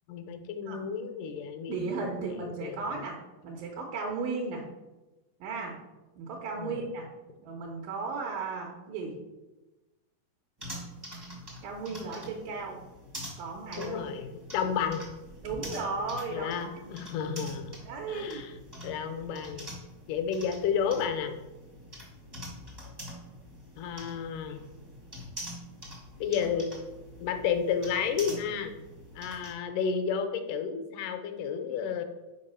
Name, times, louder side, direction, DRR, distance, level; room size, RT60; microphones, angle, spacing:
voice 1, 0.1-2.8 6.6-6.8 13.8-15.0 16.3-18.5 18.8-19.7 20.1-21.4 23.8-24.6 26.2-26.8 27.2-28.8 29.2-32.0, left 7 dB, 75° left, 7 dB, 2.1 m, -32 dB
voice 2, 1.7-3.2 3.4-4.6 5.4-5.8 6.2-7.1 7.4-9.2 11.6-12.8 13.4-14.0 15.4-17.0 17.9-18.5, right 4 dB, 80° right, 0 dB, 2.6 m, -35 dB
sound 1, 10.6-29.5, equal, 25° right, 0.5 m, -45 dB
5.8 x 4.7 x 5.5 m, 1.1 s
omnidirectional pair, 4.0 m